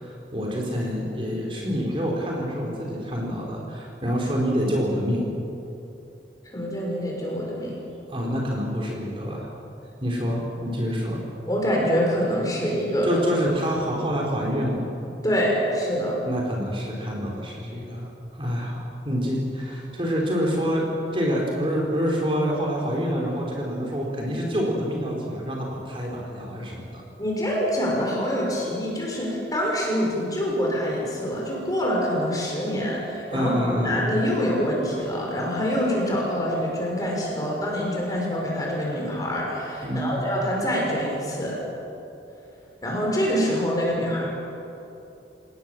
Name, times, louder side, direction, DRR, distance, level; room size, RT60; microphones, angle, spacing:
voice 1, 0.0-5.3 8.1-9.5 10.0-11.2 13.0-14.9 16.3-20.9 21.1-27.0 33.3-34.0 39.8-40.2, equal, 30° right, -2 dB, 4.0 m, -27 dB
voice 2, 6.4-7.8 11.5-13.2 15.2-16.2 27.2-41.6 42.8-44.3, equal, 20° left, -2 dB, 6.2 m, -25 dB
30.0 x 18.0 x 7.6 m, 2.9 s
head